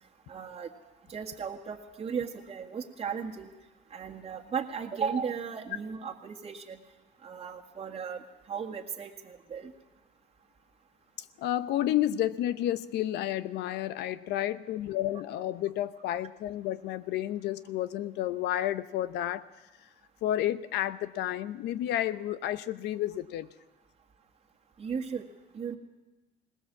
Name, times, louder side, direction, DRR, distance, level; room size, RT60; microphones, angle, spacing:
voice 1, 0.3-0.7 1.1-3.5 3.9-6.8 7.2-8.2 8.5-9.7 24.8-25.2 25.5-25.8, right 6 dB, 35° right, 0 dB, 1.8 m, -36 dB
voice 2, 11.2-19.5 20.2-23.5, left 12 dB, 85° left, 14 dB, 0.9 m, -31 dB
21.0 x 19.0 x 7.3 m, 1.1 s
cardioid pair, 110°, 17 cm